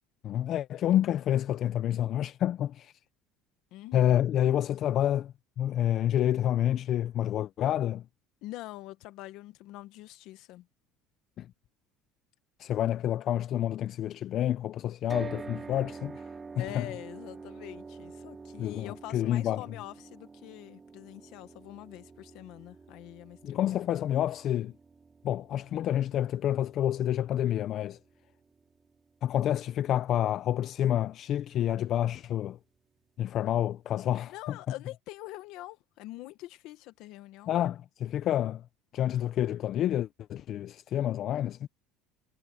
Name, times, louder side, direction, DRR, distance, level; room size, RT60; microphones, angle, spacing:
voice 1, 0.2-2.9 3.9-8.0 11.4-11.5 12.6-16.2 16.6-16.9 18.6-19.6 23.4-24.7 25.2-28.0 29.2-32.6 33.2-34.6 37.5-38.6 38.9-41.7, left 11 dB, 40° left, 0.5 m, -28 dB
voice 2, 3.7-4.2 8.4-10.7 16.6-23.6 34.2-37.5, left 17 dB, 60° left, 1.4 m, -45 dB
sound 1, 15.1-29.2, right 4 dB, 15° right, 3.5 m, -47 dB
cardioid pair, 155°, 0 cm